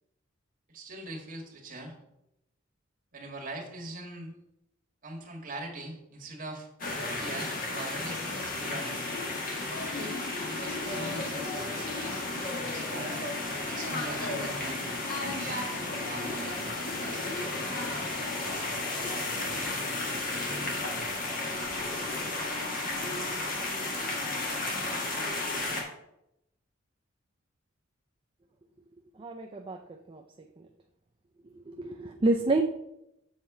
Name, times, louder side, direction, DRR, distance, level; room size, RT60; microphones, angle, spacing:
voice 1, 0.7-2.0 3.1-4.3 5.0-6.7 7.1-9.0 9.8-12.2 12.6-13.2 13.6-15.6 16.1-17.4, right 2 dB, 45° right, 0 dB, 1.9 m, -42 dB
sound 1, 6.8-25.8, left 2 dB, 45° left, 1.7 m, -33 dB
voice 2, 29.2-29.8 30.1-30.2 31.5-32.6, right 2 dB, 25° right, 3 dB, 0.4 m, -28 dB
7.3 x 4.4 x 6.1 m, 0.83 s
head